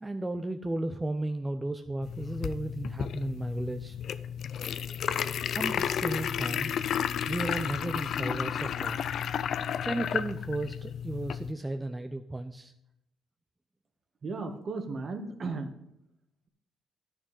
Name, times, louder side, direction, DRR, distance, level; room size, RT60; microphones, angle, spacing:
voice 1, 0.0-4.0 5.1-6.7 7.3-9.0 9.8-12.7, right 2 dB, 15° right, 7 dB, 0.7 m, -34 dB
sound 1, 2.0-11.5, left 8 dB, 65° left, 0.5 m, -32 dB
voice 2, 14.2-15.7, right 3 dB, 45° right, 7 dB, 1.7 m, -35 dB
10.0 x 6.3 x 8.1 m, 0.80 s
cardioid pair, 90°, 0 cm